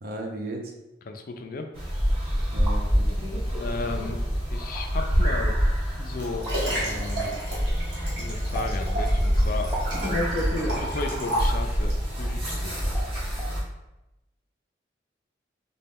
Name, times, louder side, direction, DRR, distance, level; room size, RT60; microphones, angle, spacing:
voice 1, 0.0-0.7 2.5-3.2, right 2 dB, 55° right, 1 dB, 0.6 m, -35 dB
voice 2, 1.1-1.7 3.6-4.2 4.5-5.6 6.0-7.4 8.1-9.7 10.5-12.8, left 3 dB, 50° left, 5 dB, 0.4 m, -35 dB
sound 1, 1.7-13.6, equal, 30° right, 1.3 m, -26 dB
sound 2, 2.4-2.8 3.7-3.8 4.6-4.9 6.4-6.6 8.5-8.8 9.7-10.0 10.8-11.0 12.3-12.4 12.9-13.1 13.4-13.5, right 1 dB, 10° right, 0.9 m, -35 dB
Liquid, 5.8-12.1 12.7-12.8, right 1 dB, 80° right, 1.2 m, -32 dB
4.1 x 2.2 x 3.5 m, 0.95 s
head